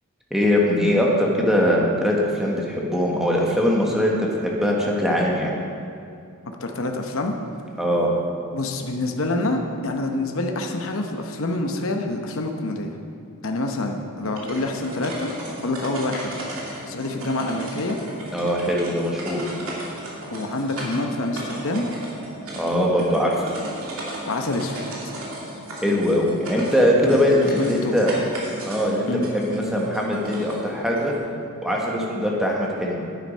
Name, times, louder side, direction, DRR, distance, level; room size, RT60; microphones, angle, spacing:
voice 1, 0.3-5.5 7.8-8.1 18.3-19.4 22.5-23.5 25.8-28.2 28.6-31.1 31.6-33.1, equal, ahead, -3 dB, 1.4 m, -21 dB
voice 2, 6.6-7.3 8.5-12.9 13.4-15.3 15.6-16.4 16.9-18.0 20.3-21.9 24.3-24.8 27.0-28.0 29.1-29.3, left 2 dB, 65° left, 3 dB, 0.9 m, -26 dB
sound 1, 14.2-31.2, right 1 dB, 70° right, 2.4 m, -36 dB
10.0 x 9.0 x 5.4 m, 2.5 s
head